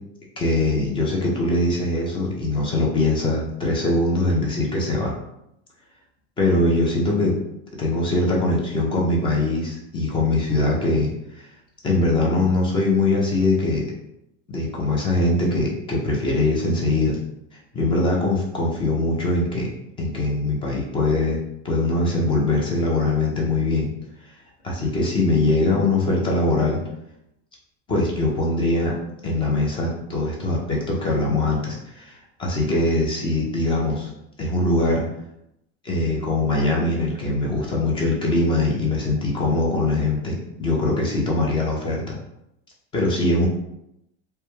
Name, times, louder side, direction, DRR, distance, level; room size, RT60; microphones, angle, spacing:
voice 1, 0.4-5.1 6.4-7.4 7.8-11.1 11.4-11.5 11.8-13.9 14.5-17.2 17.7-19.7 20.0-21.4 21.6-23.9 24.6-26.8 27.9-28.9 29.2-34.1 34.4-35.0 35.8-42.1 42.9-43.5, left 2 dB, 15° left, -3 dB, 0.3 m, -22 dB
2.2 x 2.1 x 2.9 m, 0.82 s
supercardioid pair, 135°, 35 cm